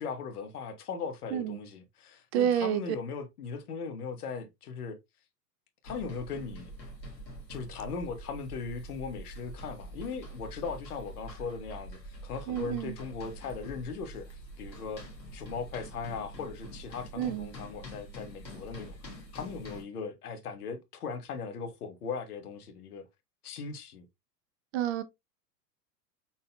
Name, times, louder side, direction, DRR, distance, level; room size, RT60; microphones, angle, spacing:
voice 1, 0.0-5.0 5.8-6.7 7.5-15.0 15.3-23.1 23.4-24.1, left 5 dB, 65° left, 1.3 m, -39 dB
voice 2, 2.3-2.8 12.5-12.9 17.2-17.5 24.7-25.0, right 10 dB, 40° right, 0.7 m, -29 dB
sound 1, 5.8-19.8, right 1 dB, 85° left, 1.7 m, -45 dB
5.7 x 4.0 x 2.2 m
figure-of-eight pair, 90°, 49 cm